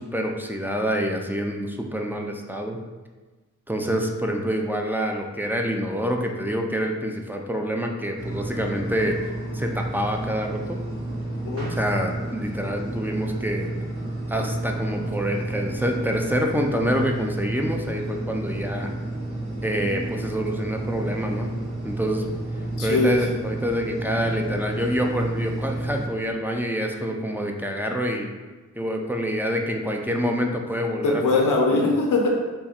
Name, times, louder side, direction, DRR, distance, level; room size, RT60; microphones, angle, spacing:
voice 1, 0.0-2.8 3.7-9.2 9.5-10.8 11.7-13.7 14.3-18.9 19.6-21.5 21.8-22.3 22.8-28.3 28.8-31.2 31.7-31.8, equal, 5° right, 1 dB, 0.4 m, -26 dB
sound 1, 8.2-26.1, right 2 dB, 45° right, 1.2 m, -31 dB
voice 2, 22.8-23.2 31.0-32.3, left 3 dB, 85° left, 0 dB, 0.5 m, -21 dB
3.5 x 2.1 x 4.2 m, 1.2 s
cardioid pair, 60°, 31 cm